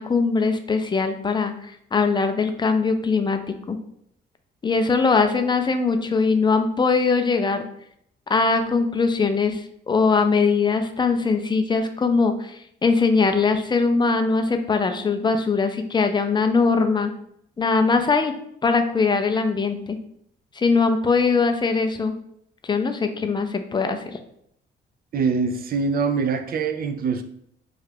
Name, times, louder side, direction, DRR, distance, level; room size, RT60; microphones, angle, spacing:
voice 1, 0.0-3.4 3.7-3.8 4.6-7.7 8.3-17.1 17.6-18.3 18.6-20.0 20.5-22.1 22.6-24.2, left 4 dB, 25° left, 7 dB, 0.4 m, -21 dB
voice 2, 25.1-27.2, right 5 dB, 50° right, 9 dB, 0.4 m, -24 dB
3.2 x 2.4 x 3.3 m, 0.72 s
cardioid pair, 90°, 20 cm